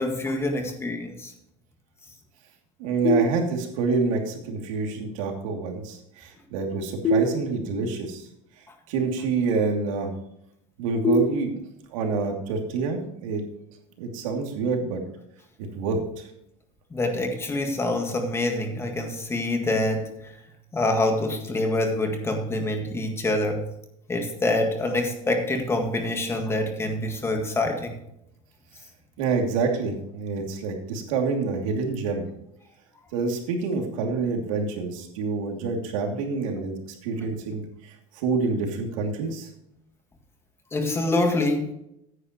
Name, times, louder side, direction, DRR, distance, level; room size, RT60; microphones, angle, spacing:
voice 1, 0.0-1.3 16.9-20.3 20.7-23.6 24.1-27.9 40.7-41.7, left 2 dB, 15° left, 4 dB, 1.8 m, -26 dB
voice 2, 2.8-8.3 8.9-10.1 10.8-11.5 11.9-13.4 14.0-15.0 15.7-16.3 29.2-32.2 33.1-36.7 37.0-39.5, right 4 dB, 90° right, 2 dB, 2.8 m, -27 dB
sound 1, 3.0-4.0 7.0-8.0 11.0-12.0, equal, 30° left, 1.9 m, -26 dB
15.0 x 9.8 x 3.1 m, 0.78 s
cardioid pair, 145°, 17 cm